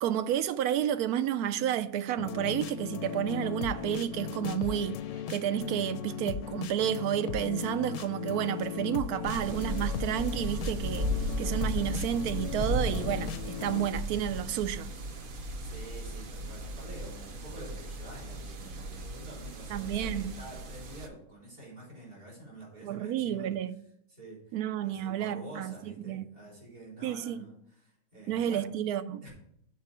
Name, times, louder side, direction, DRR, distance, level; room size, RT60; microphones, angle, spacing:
voice 1, 0.0-5.0 5.3-11.1 11.4-13.3 13.6-14.9 19.7-20.3 22.8-23.8 24.5-26.3 27.0-27.4 28.3-29.3, right 10 dB, 90° right, 1.1 m, -31 dB
sound 1, 2.2-13.9, left 9 dB, 80° left, 1.0 m, -37 dB
sound 2, 9.2-21.1, right 1 dB, 45° right, 0.7 m, -36 dB
voice 2, 15.6-23.5 24.1-28.6 28.9-29.3, right 1 dB, 70° right, 4.6 m, -48 dB
7.5 x 4.7 x 7.1 m
omnidirectional pair, 1.5 m